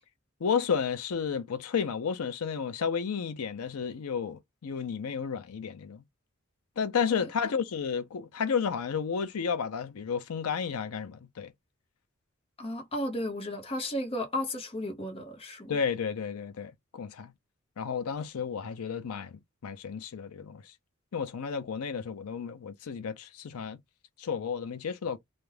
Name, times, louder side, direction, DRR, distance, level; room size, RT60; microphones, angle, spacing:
voice 1, 0.4-6.0 6.8-11.5 15.7-17.3 17.8-20.7 21.1-23.8 24.2-25.2, left 6 dB, 85° left, 0.5 m, -32 dB
voice 2, 7.1-7.5 12.6-15.8, left 1 dB, 25° left, 0.7 m, -34 dB
2.4 x 2.1 x 3.2 m
head